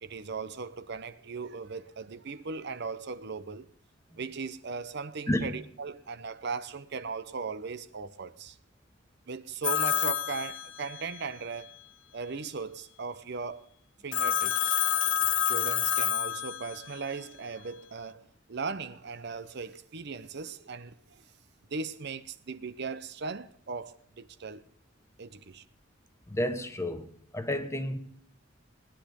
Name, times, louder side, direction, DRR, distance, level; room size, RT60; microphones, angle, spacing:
voice 1, 0.0-3.7 4.1-8.6 9.3-11.8 12.1-13.7 14.0-14.8 15.5-21.2 21.7-24.6 25.2-25.6, right 4 dB, 60° right, 0.8 m, -38 dB
Telephone, 9.6-11.2 14.1-17.0, left 10 dB, 75° left, 0.8 m, -28 dB
voice 2, 26.3-27.1 27.3-28.0, left 1 dB, 15° left, 1.3 m, -30 dB
19.0 x 10.5 x 5.2 m
head